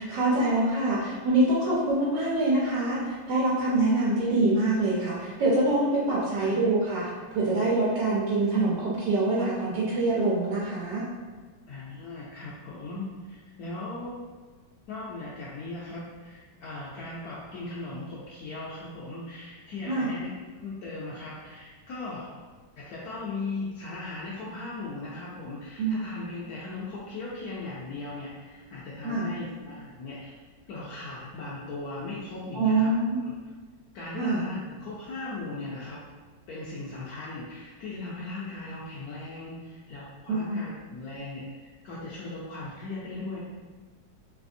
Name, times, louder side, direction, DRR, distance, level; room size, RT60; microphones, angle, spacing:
voice 1, 0.0-11.0 19.9-20.1 25.8-26.0 29.0-29.3 32.5-33.2 34.2-34.4 40.3-40.7, right 2 dB, 90° right, -6 dB, 1.4 m, -25 dB
voice 2, 11.7-14.2 14.9-20.3 20.6-22.5 22.7-30.4 30.7-32.9 33.2-33.4 33.9-36.1 36.5-41.5 41.8-43.4, left 2 dB, 70° left, -6 dB, 1.0 m, -38 dB
3.3 x 3.2 x 2.6 m, 1.4 s
omnidirectional pair, 2.0 m